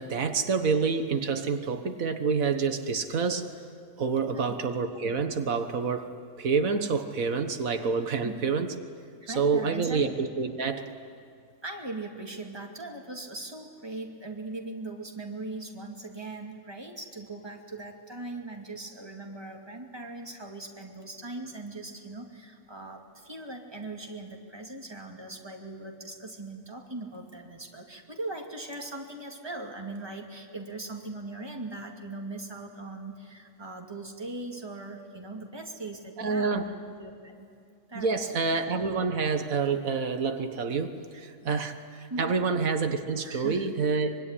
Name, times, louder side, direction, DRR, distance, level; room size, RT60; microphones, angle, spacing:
voice 1, 0.0-3.5 4.0-8.7 9.3-10.9 36.2-36.7 37.9-44.2, right 5 dB, 85° right, 7 dB, 1.8 m, -28 dB
voice 2, 9.2-10.2 11.6-36.6 37.0-37.5 37.9-38.3 42.1-42.4 43.2-43.7, right 2 dB, 20° right, 1 dB, 2.6 m, -40 dB
25.0 x 23.5 x 10.0 m, 2.3 s
omnidirectional pair, 1.4 m